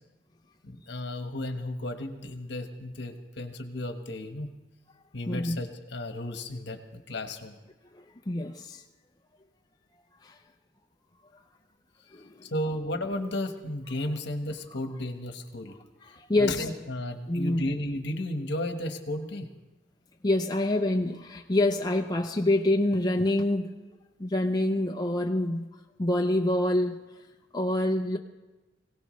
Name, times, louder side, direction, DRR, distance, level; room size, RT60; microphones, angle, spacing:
voice 1, 0.6-4.5 5.1-7.6 12.4-15.7 16.4-19.5, left 1 dB, 60° left, 6 dB, 1.3 m, -34 dB
voice 2, 5.3-5.6 8.3-8.8 10.2-10.4 12.1-12.5 16.0-16.6 17.3-17.7 20.2-23.7 24.2-25.6 26.0-27.0 27.5-28.2, left 1 dB, 20° left, 1 dB, 0.6 m, -26 dB
23.5 x 17.0 x 3.2 m, 1.1 s
head